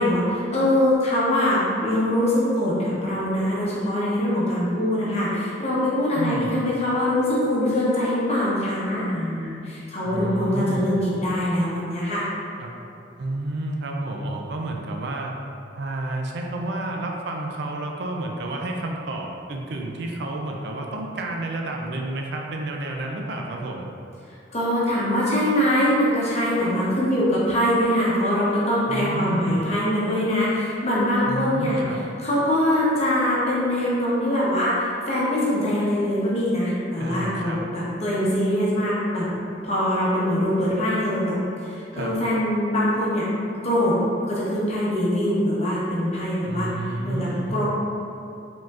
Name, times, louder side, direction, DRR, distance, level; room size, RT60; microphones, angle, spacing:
voice 1, 0.0-12.3 24.5-31.8 32.2-39.3 39.6-41.4 41.6-43.3 43.6-44.0 44.3-46.7 47.0-47.6, left 1 dB, 35° left, -7 dB, 1.0 m, -23 dB
voice 2, 6.1-6.6 10.0-10.9 12.6-12.7 13.2-15.3 15.7-23.9 28.9-29.6 31.3-32.0 37.0-37.6 41.9-42.2 46.4-47.6, right 2 dB, 60° right, 1 dB, 0.4 m, -30 dB
4.9 x 3.7 x 2.5 m, 2.7 s
head